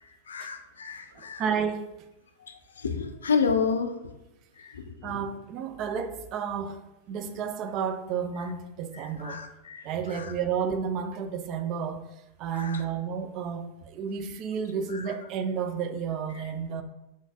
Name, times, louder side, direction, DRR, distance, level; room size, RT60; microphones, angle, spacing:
voice 1, 0.3-1.4 2.4-3.9 4.6-5.0 8.9-9.9 10.1-10.3 12.5-12.8 14.9-15.0, left 5 dB, 70° left, 7 dB, 0.4 m, -30 dB
voice 2, 1.1-1.9 5.0-9.4 9.8-12.1 12.4-16.8, right 7 dB, 40° right, 7 dB, 0.3 m, -31 dB
3.8 x 3.7 x 2.3 m, 0.94 s
figure-of-eight pair, 90°, 0 cm